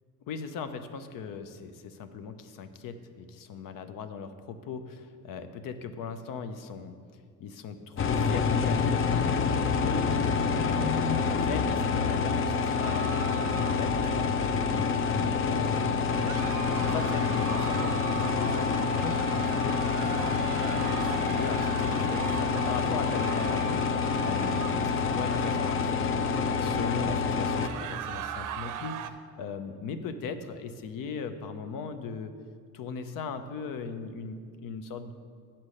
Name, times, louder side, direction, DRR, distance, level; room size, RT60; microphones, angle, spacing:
voice 1, 0.3-7.0 7.4-10.1 10.5-20.2 20.6-26.2 26.6-32.3 32.7-35.1, left 5 dB, 80° left, 9 dB, 0.6 m, -39 dB
sound 1, 8.0-27.7, left 5 dB, 40° left, 0.5 m, -27 dB
sound 2, 12.8-14.4 16.1-25.7 27.4-29.1, right 10 dB, 70° right, 0.5 m, -39 dB
8.1 x 4.3 x 6.4 m, 2.1 s
cardioid pair, 90°, 33 cm